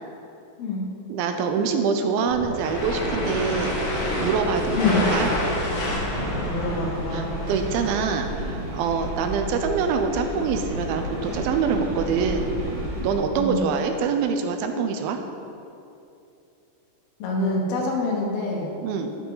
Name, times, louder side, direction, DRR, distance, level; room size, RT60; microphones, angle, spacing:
voice 1, 1.1-3.7 4.2-5.3 7.1-12.5 13.0-15.2 18.8-19.1, right 5 dB, 90° right, 6 dB, 2.6 m, -25 dB
sound 1, 2.3-7.9, left 1 dB, 45° left, 1.5 m, -28 dB
sound 2, 2.7-13.2, equal, 60° right, 3.1 m, -32 dB
voice 2, 4.7-5.1 6.3-7.3 13.3-13.7 17.2-18.7, left 2 dB, 90° left, -1 dB, 3.3 m, -26 dB
12.0 x 7.4 x 3.9 m, 2.7 s
omnidirectional pair, 4.1 m